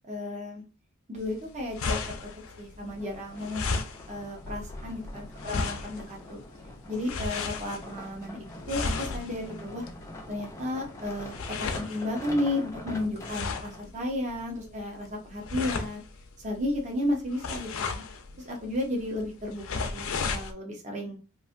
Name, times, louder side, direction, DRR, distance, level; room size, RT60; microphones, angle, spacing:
voice 1, 0.1-0.6 1.1-2.0 2.6-3.8 4.1-6.4 6.9-9.9 10.3-16.0 16.4-18.0 18.4-21.2, left 1 dB, 30° right, 0 dB, 0.8 m, -33 dB
sound 1, 1.2-20.5, left 4 dB, 65° left, 0.5 m, -36 dB
sound 2, 2.8-13.8 14.5-14.6, left 1 dB, 15° left, 0.5 m, -45 dB
3.2 x 2.5 x 2.5 m, 0.32 s
head